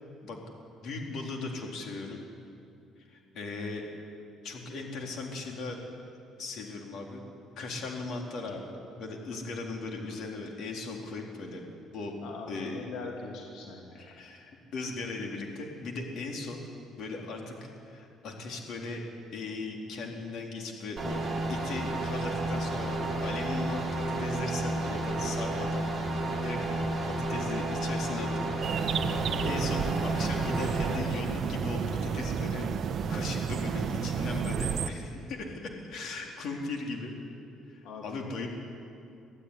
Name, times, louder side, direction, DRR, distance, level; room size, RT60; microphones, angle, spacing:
voice 1, 0.8-2.2 3.1-3.8 4.4-5.8 6.4-7.2 7.6-11.6 11.9-12.1 12.5-12.8 13.9-16.6 17.0-19.0 19.3-21.2 21.5-25.8 26.4-28.4 28.8-32.7 33.1-37.1 37.7-38.5, left 3 dB, 60° left, 1 dB, 3.8 m, -38 dB
voice 2, 12.2-14.0 37.8-38.2, left 4 dB, 85° left, 0 dB, 3.0 m, -41 dB
sound 1, 21.0-31.0, right 2 dB, 15° right, 4.6 m, -32 dB
sound 2, 28.6-34.9, right 6 dB, 45° right, 1.1 m, -31 dB
24.5 x 15.0 x 10.0 m, 2.6 s
cardioid pair, 145°, 0 cm